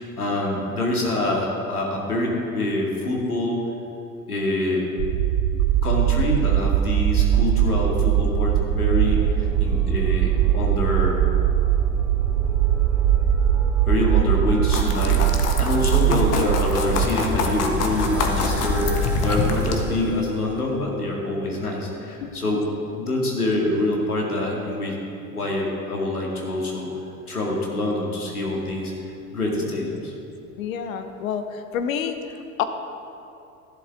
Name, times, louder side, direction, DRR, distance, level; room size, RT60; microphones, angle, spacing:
voice 1, 0.0-3.6 4.3-4.9 5.8-11.2 13.9-22.7 22.9-25.0 25.3-26.9 27.3-28.9 29.3-30.1, left 1 dB, 85° left, -2 dB, 2.2 m, -25 dB
sound 1, 5.0-17.1, right 10 dB, 50° right, 0.6 m, -21 dB
sound 2, 7.0-20.8, right 1 dB, 5° right, 1.5 m, -35 dB
sound 3, 14.7-19.8, left 3 dB, 35° left, 1.4 m, -25 dB
voice 2, 30.6-32.6, left 8 dB, 65° left, 8 dB, 1.1 m, -29 dB
13.5 x 11.5 x 3.6 m, 2.6 s
figure-of-eight pair, 80°, 44 cm